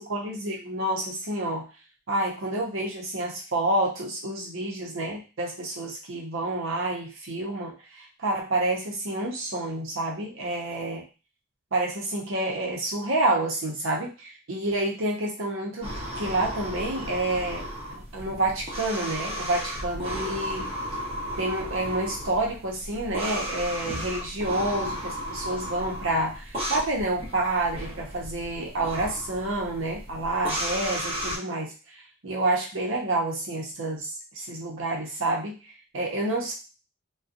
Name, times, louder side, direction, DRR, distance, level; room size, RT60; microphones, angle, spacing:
voice 1, 0.0-1.7 2.1-11.0 11.7-20.7 21.4-36.5, right 2 dB, 85° right, -1 dB, 0.8 m, -29 dB
sound 1, 15.8-31.4, equal, 30° right, 0.8 m, -34 dB
2.6 x 2.2 x 2.5 m, 0.32 s
head